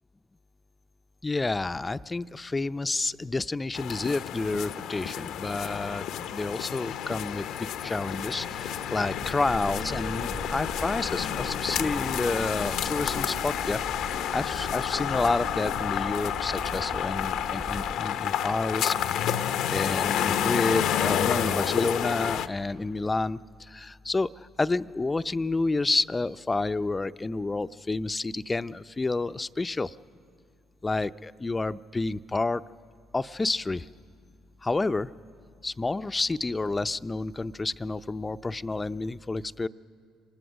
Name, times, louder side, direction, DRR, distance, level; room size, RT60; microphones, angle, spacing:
voice 1, 1.2-6.1 6.3-13.8 14.3-29.9 30.8-32.6 33.1-33.9 34.6-35.1 35.6-39.7, left 3 dB, 25° left, 13 dB, 0.5 m, -29 dB
sound 1, 3.7-22.5, left 9 dB, 70° left, 0.6 m, -30 dB
sound 2, 8.0-17.6, right 3 dB, 70° right, 3.5 m, -49 dB
sound 3, 9.2-18.0, right 2 dB, 35° right, 1.3 m, -41 dB
25.5 x 20.0 x 6.4 m, 2.2 s
hypercardioid pair, 55°, 0 cm